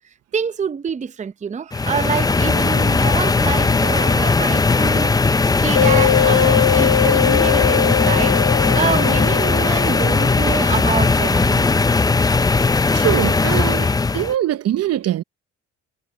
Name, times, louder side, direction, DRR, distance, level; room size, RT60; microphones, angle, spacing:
voice 1, 0.3-5.3 5.6-8.4 8.7-11.7, right 7 dB, 25° right, 0.7 m, -26 dB
sound 1, 1.7-14.3, left 3 dB, 15° left, 0.5 m, -18 dB
sound 2, 5.8-11.1, left 11 dB, 60° left, 0.7 m, -21 dB
voice 2, 12.9-13.9 14.1-15.2, right 12 dB, 55° right, 0.8 m, -22 dB
supercardioid pair, 85°, 30 cm